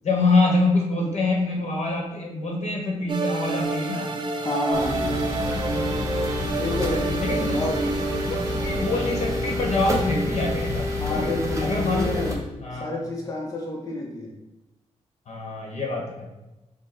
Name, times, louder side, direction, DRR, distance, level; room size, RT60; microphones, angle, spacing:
voice 1, 0.0-4.1 7.1-7.9 8.3-11.3 11.6-12.2 12.6-13.0 15.3-16.3, left 2 dB, 65° left, 0 dB, 1.1 m, -25 dB
sound 1, 3.1-10.0, right 3 dB, 40° right, 0.5 m, -29 dB
voice 2, 4.4-5.3 6.6-7.2 7.5-7.8 11.0-12.4 12.7-14.3, left 2 dB, 30° left, -2 dB, 0.7 m, -29 dB
sound 2, 4.7-12.3, left 2 dB, 25° right, 0.8 m, -28 dB
5.0 x 2.2 x 4.3 m, 1.0 s
wide cardioid pair, 125°, 12 cm